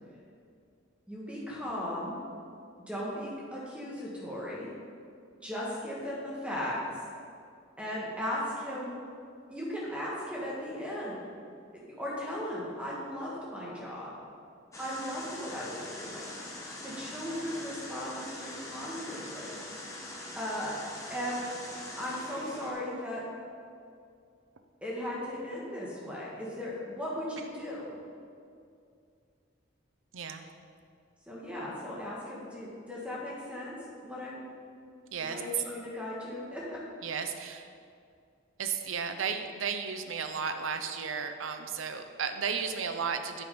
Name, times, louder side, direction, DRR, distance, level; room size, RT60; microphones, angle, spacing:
voice 1, 1.1-2.2 2.9-4.7 5.4-7.0 7.8-8.9 9.5-11.2 11.7-14.2 14.8-16.3 16.8-19.6 20.3-20.8 21.1-21.4 22.0-23.2 24.8-28.0 31.3-33.8 34.0-34.4 35.2-36.8, left 1 dB, 5° right, -5 dB, 1.4 m, -37 dB
sound 1, 14.7-22.7, left 1 dB, 15° left, 1.1 m, -43 dB
voice 2, 30.1-30.4 35.1-35.4 37.0-37.7 38.6-43.4, right 6 dB, 75° right, 7 dB, 0.7 m, -34 dB
8.4 x 6.1 x 5.1 m, 2.4 s
head